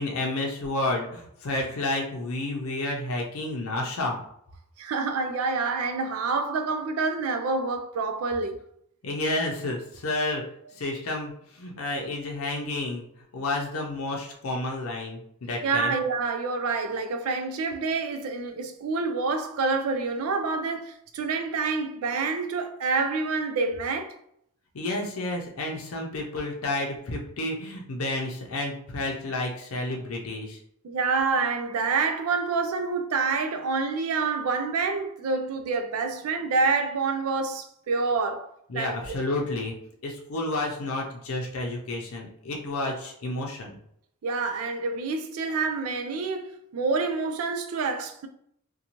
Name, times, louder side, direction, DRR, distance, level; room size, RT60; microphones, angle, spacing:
voice 1, 0.0-4.2 9.0-10.4 10.7-13.1 13.3-16.0 24.7-30.6 38.7-39.7 40.0-43.8, left 2 dB, 80° left, 0.6 m, -30 dB
voice 2, 4.8-8.6 15.6-24.2 30.8-39.2 44.2-48.3, right 4 dB, 85° right, 0.4 m, -27 dB
2.6 x 2.2 x 2.9 m
head